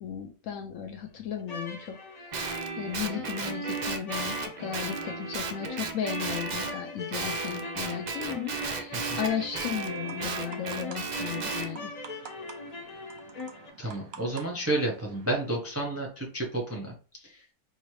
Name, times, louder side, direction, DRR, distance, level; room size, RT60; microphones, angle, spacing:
voice 1, 0.0-2.0 2.8-11.9 13.8-14.0, left 8 dB, 65° left, 4 dB, 0.9 m, -35 dB
sound 1, 1.4-13.7, left 1 dB, 50° left, 0.4 m, -41 dB
Guitar, 2.3-6.8 7.1-11.7, right 4 dB, 75° right, 0.4 m, -34 dB
sound 2, 9.1-15.6, right 6 dB, 55° right, 0.8 m, -50 dB
voice 2, 13.8-17.5, right 2 dB, 15° right, -1 dB, 0.6 m, -31 dB
5.6 x 2.8 x 3.1 m, 0.37 s
omnidirectional pair, 1.6 m